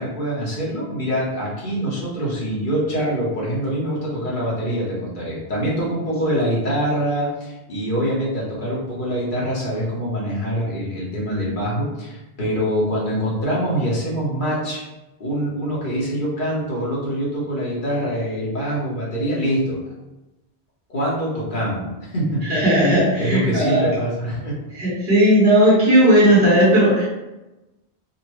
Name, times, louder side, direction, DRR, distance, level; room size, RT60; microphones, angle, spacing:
voice 1, 0.0-14.8 15.2-19.8 20.9-22.6 22.9-24.6, equal, 55° left, -5 dB, 1.2 m, -24 dB
voice 2, 22.5-23.9 24.8-27.0, right 1 dB, 70° right, -8 dB, 1.5 m, -15 dB
4.0 x 2.1 x 3.0 m, 1.0 s
omnidirectional pair, 1.1 m